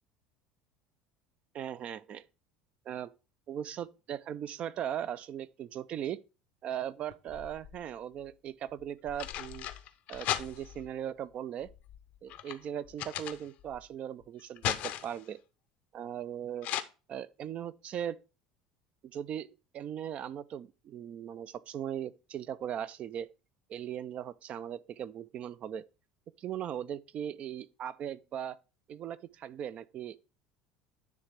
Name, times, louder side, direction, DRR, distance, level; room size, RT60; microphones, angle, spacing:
voice 1, 1.5-2.2 2.9-3.1 3.5-6.2 6.6-9.7 10.1-11.7 12.2-15.4 15.9-16.7 17.1-18.2 19.1-19.5 19.7-23.3 23.7-25.8 26.4-28.6 28.9-30.2, right 10 dB, 45° right, 0.4 m, -38 dB
sound 1, 7.1-7.9 8.8-10.9 11.6-13.8 14.2-15.3 16.6-16.8, left 12 dB, 55° left, 0.6 m, -37 dB
9.7 x 3.2 x 4.7 m
figure-of-eight pair, 70°, 3 cm